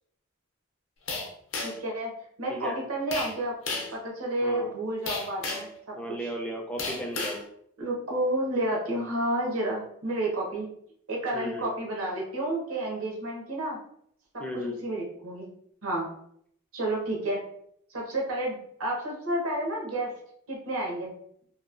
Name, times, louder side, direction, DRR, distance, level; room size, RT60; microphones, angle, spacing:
sound 1, 1.1-1.9 3.1-3.3 3.7-4.0 5.1-5.7 6.8-7.4, left 3 dB, 65° left, 0.6 m, -33 dB
voice 1, 1.6-2.1 2.4-3.5 3.9-6.3 7.8-10.7 11.1-13.8 14.3-15.5 15.8-16.1 16.7-17.4 17.9-20.1 20.5-21.1, right 1 dB, 80° right, -2 dB, 0.9 m, -30 dB
voice 2, 4.4-4.7 5.9-7.4 11.3-11.7 14.4-14.8, equal, 5° left, 0 dB, 0.3 m, -35 dB
2.9 x 2.1 x 2.4 m, 0.69 s
head